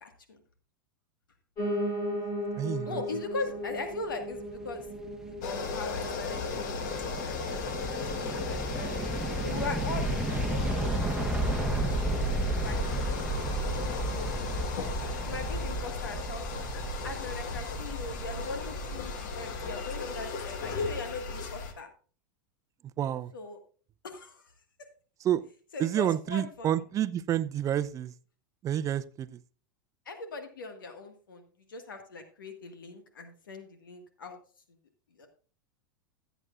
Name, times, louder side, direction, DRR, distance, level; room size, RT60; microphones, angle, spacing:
voice 1, 0.0-0.4 2.9-4.8 5.4-9.0 9.4-10.9 11.2-14.8 15.2-16.7 17.0-21.9 23.3-23.6 24.0-24.4 25.7-26.8 30.1-34.4 35.2-35.3, left 3 dB, 90° left, 1.8 m, -41 dB
Piano, 1.6-10.7 11.1-12.2 12.5-12.6 12.8-12.9 13.2-13.3 13.8-13.9, equal, 35° left, 3.5 m, -38 dB
voice 2, 2.6-3.2 23.0-23.3 25.2-25.4 25.8-28.1 28.6-29.4, right 11 dB, 30° right, 0.5 m, -29 dB
sound 1, 4.3-19.8, right 2 dB, 5° right, 1.2 m, -34 dB
sound 2, 5.4-21.7, left 4 dB, 65° left, 1.6 m, -36 dB
15.5 x 8.1 x 2.5 m
hypercardioid pair, 105°, 11 cm